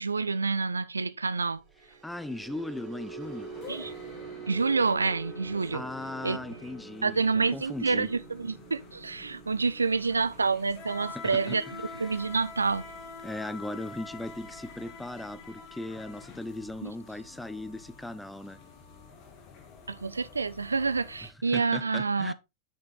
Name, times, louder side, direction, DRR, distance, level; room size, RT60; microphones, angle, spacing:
voice 1, 0.0-1.6 3.7-3.9 4.5-5.8 6.2-6.4 7.0-11.6 12.0-12.8 16.8-16.9 19.9-22.3, right 4 dB, 75° right, 0.4 m, -28 dB
sound 1, 1.6-18.0 18.4-18.7 19.0-19.2, right 4 dB, 40° right, 3.6 m, -47 dB
voice 2, 2.0-3.5 5.7-8.1 11.1-11.6 13.2-18.6 21.5-22.3, left 1 dB, 5° left, 0.6 m, -38 dB
sound 2, 3.2-21.3, left 5 dB, 35° left, 2.4 m, -48 dB
6.5 x 5.8 x 3.8 m
figure-of-eight pair, 90°, 0 cm